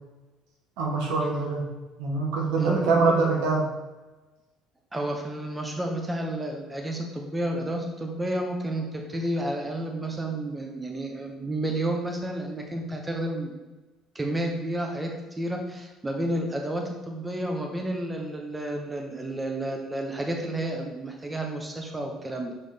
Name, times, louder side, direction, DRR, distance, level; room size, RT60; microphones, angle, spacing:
voice 1, 0.8-1.7 2.0-3.7 17.4-17.5, right 3 dB, 90° right, -1 dB, 1.7 m, -24 dB
voice 2, 2.6-3.2 4.9-13.5 14.1-22.5, right 1 dB, 15° right, 2 dB, 1.0 m, -31 dB
6.5 x 3.7 x 5.2 m, 1.1 s
cardioid pair, 110°, 0 cm